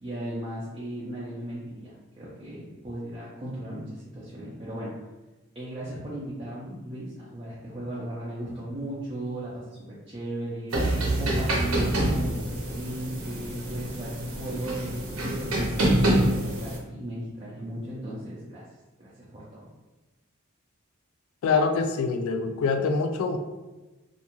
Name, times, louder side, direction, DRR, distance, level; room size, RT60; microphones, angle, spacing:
voice 1, 0.0-4.9 5.5-14.8 15.2-18.6 19.0-19.6, right 1 dB, 25° right, -8 dB, 0.5 m, -36 dB
sound 1, 10.7-16.8, right 1 dB, 85° right, 0.7 m, -26 dB
voice 2, 21.4-23.4, left 4 dB, 75° left, 8 dB, 0.3 m, -25 dB
2.5 x 2.3 x 2.9 m, 1.1 s
head